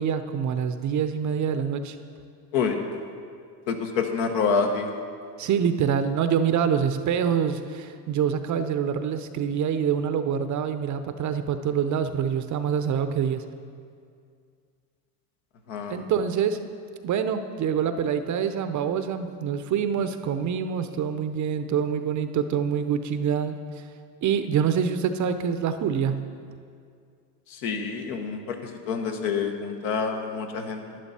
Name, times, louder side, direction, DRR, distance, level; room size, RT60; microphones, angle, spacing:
voice 1, 0.0-2.0 5.4-13.4 15.9-16.6 17.0-23.5 24.2-26.2, right 7 dB, 35° right, 10 dB, 0.6 m, -25 dB
voice 2, 3.7-4.9 15.7-16.0 27.5-28.6 28.9-30.8, left 5 dB, 70° left, 4 dB, 1.4 m, -27 dB
11.0 x 10.5 x 4.2 m, 2.3 s
supercardioid pair, 95°, 50 cm